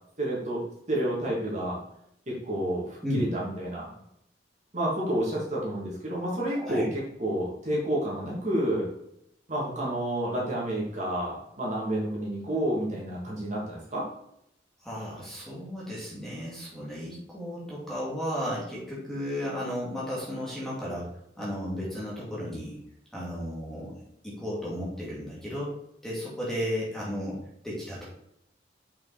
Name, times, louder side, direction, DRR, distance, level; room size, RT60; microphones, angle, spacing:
voice 1, 0.2-0.6 0.9-1.8 2.3-3.9 4.7-8.9 9.5-14.1, right 1 dB, 40° right, -5 dB, 2.5 m, -30 dB
voice 2, 6.5-6.9 14.8-22.8 23.1-23.9 24.2-28.0, equal, ahead, -6 dB, 2.4 m, -34 dB
6.7 x 5.7 x 4.2 m, 0.76 s
head